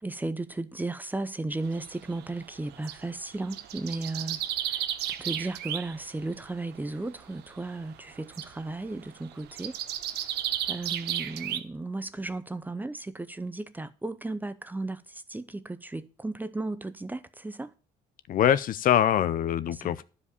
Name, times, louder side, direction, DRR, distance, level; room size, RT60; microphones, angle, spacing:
voice 1, 0.0-4.4 4.7-4.9 5.2-9.8 10.1-10.2 10.7-17.7 19.7-20.0, right 2 dB, 10° right, 0.6 m, -35 dB
sound 1, 1.6-3.0 3.4-6.0 6.3-6.8 7.4-7.8 8.1-11.6, right 11 dB, 80° right, 0.9 m, -33 dB
voice 2, 18.3-20.0, left 10 dB, 55° left, 0.5 m, -24 dB
11.0 x 5.0 x 6.7 m
cardioid pair, 110°, 17 cm